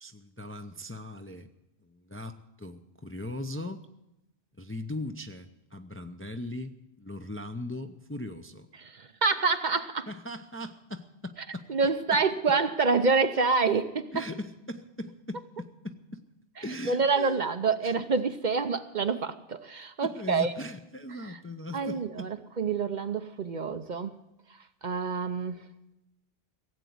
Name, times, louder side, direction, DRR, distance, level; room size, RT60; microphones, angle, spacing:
voice 1, 0.0-1.5 1.8-3.9 4.6-8.7 10.1-11.7 14.1-16.2 16.6-17.5 17.8-17.9 20.0-22.3, left 1 dB, 15° left, 7 dB, 0.5 m, -39 dB
voice 2, 8.8-10.1 11.7-14.1 16.9-20.5 21.7-24.1 24.8-25.6, right 4 dB, 50° right, 10 dB, 0.8 m, -27 dB
17.0 x 8.2 x 9.3 m, 0.91 s
omnidirectional pair, 1.1 m